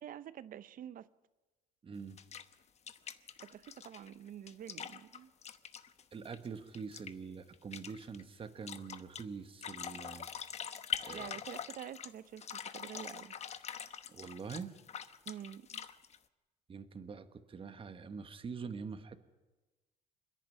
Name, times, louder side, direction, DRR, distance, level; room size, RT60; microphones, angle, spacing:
voice 1, 0.0-1.1 3.4-5.3 11.1-13.3 15.3-15.8, right 10 dB, 55° right, 0.8 m, -47 dB
voice 2, 1.8-2.2 6.1-10.3 11.0-11.3 14.1-14.7 16.7-19.2, right 5 dB, 30° right, 1.3 m, -45 dB
sound 1, 2.2-2.5 2.9-6.5 6.7-7.1 7.5-8.2 8.7-9.2 9.6-12.1 12.4-16.2, left 8 dB, 40° left, 1.0 m, -44 dB
26.5 x 10.5 x 9.2 m
cardioid pair, 110°, 17 cm